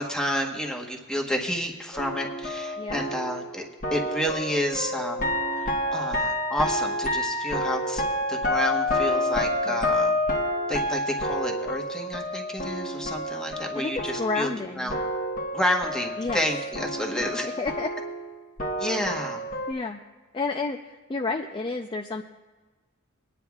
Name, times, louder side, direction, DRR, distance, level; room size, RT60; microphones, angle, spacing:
voice 1, 0.0-3.6 3.9-5.3 5.6-8.0 8.3-10.1 10.7-14.5 14.8-15.0 15.5-17.5 18.8-19.4, equal, 5° left, 1 dB, 1.1 m, -30 dB
sound 1, 1.9-14.6 14.9-19.7, left 1 dB, 40° left, 1.3 m, -29 dB
voice 2, 13.7-14.9 16.2-16.4 17.1-17.9 19.7-20.0 20.3-22.2, left 3 dB, 25° left, 4 dB, 0.4 m, -31 dB
24.0 x 9.9 x 2.3 m, 1.3 s
head